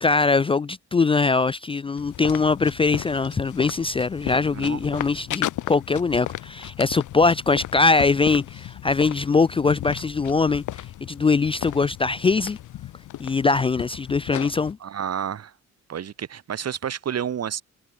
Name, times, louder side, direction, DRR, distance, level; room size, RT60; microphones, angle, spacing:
voice 1, 0.0-10.6 11.0-12.6 13.2-14.8, left 4 dB, 20° left, 0.3 m, -22 dB
sound 1, 2.0-14.7, left 13 dB, 80° left, 4.9 m, -35 dB
voice 2, 14.8-15.5 15.9-17.6, right 8 dB, 55° right, 4.0 m, -30 dB
cardioid pair, 90°, 30 cm